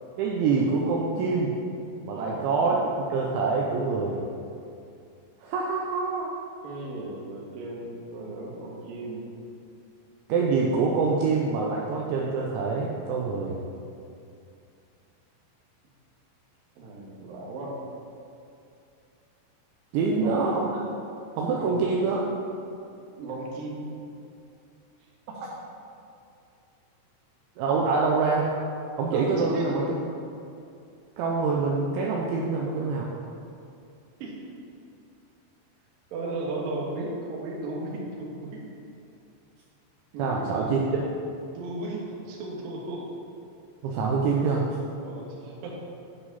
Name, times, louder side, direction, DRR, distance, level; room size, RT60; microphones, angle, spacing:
voice 1, 0.2-1.6 2.0-4.2 5.4-6.3 10.3-13.6 19.9-20.9 21.4-22.3 27.6-28.5 29.0-29.8 31.2-33.1 40.2-40.8 43.8-44.7, right 4 dB, 85° right, -2 dB, 2.7 m, -25 dB
voice 2, 6.6-9.2 16.8-17.8 20.1-20.4 21.5-21.8 23.2-23.8 25.3-25.5 29.1-29.8 34.2-34.4 36.1-38.6 40.1-40.7 41.5-43.0 44.3-44.5 45.0-45.7, right 2 dB, 70° right, -3 dB, 2.3 m, -35 dB
9.7 x 7.7 x 4.1 m, 2.5 s
omnidirectional pair, 6.0 m